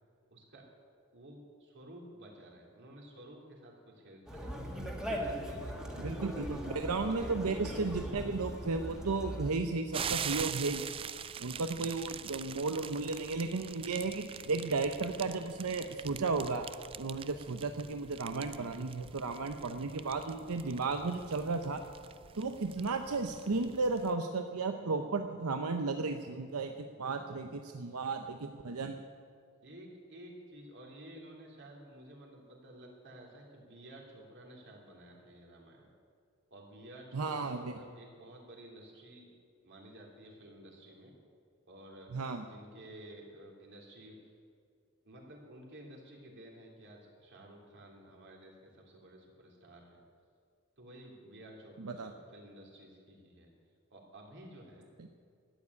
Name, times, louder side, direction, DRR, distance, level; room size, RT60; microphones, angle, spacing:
voice 1, 0.3-0.7 1.1-4.7 5.2-6.0 7.0-7.6 27.0-27.2 29.6-35.9 36.5-39.3 39.6-41.1 41.7-42.1 42.4-44.2 45.0-50.0 50.8-53.5 53.9-54.9, right 1 dB, 55° right, -1 dB, 3.4 m, -53 dB
Conversation, 4.3-9.5, equal, 5° right, 1.9 m, -39 dB
voice 2, 6.0-10.9 11.4-16.7 17.0-21.8 22.3-29.0 37.1-37.7 42.1-42.4 51.8-52.1, right 3 dB, 80° right, 6 dB, 0.8 m, -34 dB
sound 1, 9.9-24.1, right 8 dB, 25° right, 0.3 m, -44 dB
13.0 x 9.7 x 9.7 m, 2.1 s
head